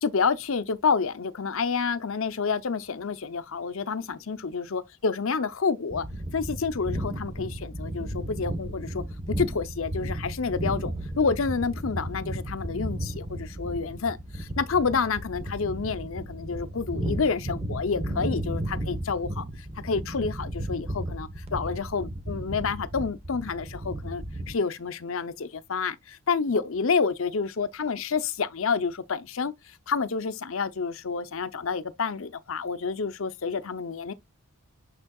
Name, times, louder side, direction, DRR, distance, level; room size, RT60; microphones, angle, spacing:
voice 1, 0.0-6.1 6.3-9.0 9.4-19.4 19.8-34.1, left 5 dB, 65° left, 0.6 m, -29 dB
air rush, 5.9-24.5, right 1 dB, 30° right, 1.1 m, -34 dB
6.7 x 6.3 x 2.3 m
head